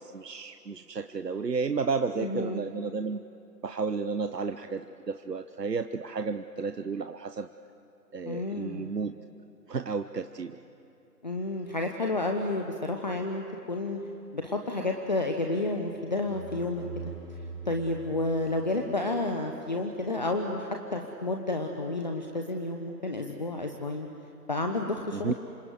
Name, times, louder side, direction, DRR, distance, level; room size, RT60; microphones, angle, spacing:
voice 1, 0.0-3.2 3.6-7.5 8.1-9.2 9.7-10.6 25.1-25.3, right 5 dB, 75° right, 9 dB, 1.0 m, -32 dB
voice 2, 2.2-2.6 8.3-8.9 11.2-14.0 14.3-17.0 17.6-24.1 24.5-25.3, left 2 dB, 25° left, 3 dB, 1.1 m, -31 dB
sound 1, 15.9-19.5, right 4 dB, 10° right, 7.5 m, -44 dB
27.5 x 26.5 x 8.0 m, 2.8 s
figure-of-eight pair, 160°, 49 cm